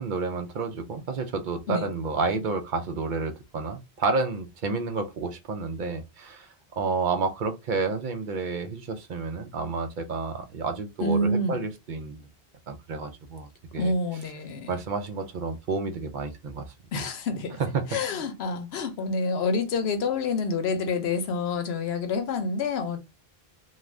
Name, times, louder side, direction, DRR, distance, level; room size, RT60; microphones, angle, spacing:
voice 1, 0.0-12.2 12.7-13.5 13.7-13.9 14.7-16.6 17.6-17.9, right 4 dB, 60° right, 0.6 m, -30 dB
voice 2, 11.0-11.6 13.7-14.8 16.9-17.6 17.9-23.0, left 3 dB, 85° left, 0.9 m, -27 dB
2.4 x 2.3 x 3.2 m
omnidirectional pair, 1.0 m